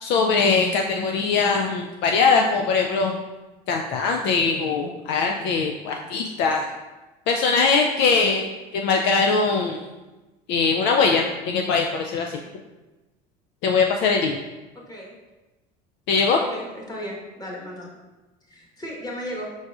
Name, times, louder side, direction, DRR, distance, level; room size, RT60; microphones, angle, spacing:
voice 1, 0.0-3.2 3.7-6.6 7.3-9.9 10.5-12.4 13.6-14.4 16.1-16.4, left 4 dB, 65° left, 2 dB, 0.4 m, -21 dB
voice 2, 14.7-15.1 16.4-17.9 18.5-19.5, equal, 20° left, -2 dB, 1.2 m, -35 dB
4.8 x 3.9 x 2.4 m, 1.1 s
supercardioid pair, 90°, 20 cm